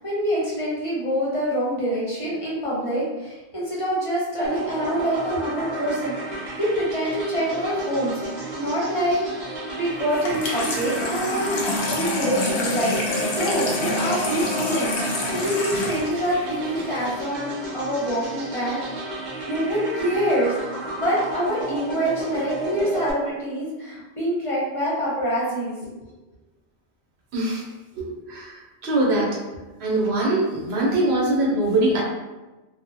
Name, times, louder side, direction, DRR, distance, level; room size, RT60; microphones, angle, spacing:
voice 1, 0.0-8.1 8.5-9.2 9.8-11.5 11.9-12.9 13.4-15.0 15.3-18.8 19.5-20.5 21.0-25.8, equal, 35° left, -7 dB, 0.7 m, -25 dB
sound 1, 4.4-23.1, right 2 dB, 50° right, 0.6 m, -32 dB
Water tap faucet / Sink (filling or washing), 10.1-17.2, left 2 dB, 65° left, 0.8 m, -28 dB
voice 2, 27.3-27.6 28.0-29.4 29.8-32.0, right 2 dB, 70° right, -3 dB, 0.9 m, -22 dB
2.8 x 2.0 x 2.6 m, 1.1 s
omnidirectional pair, 1.1 m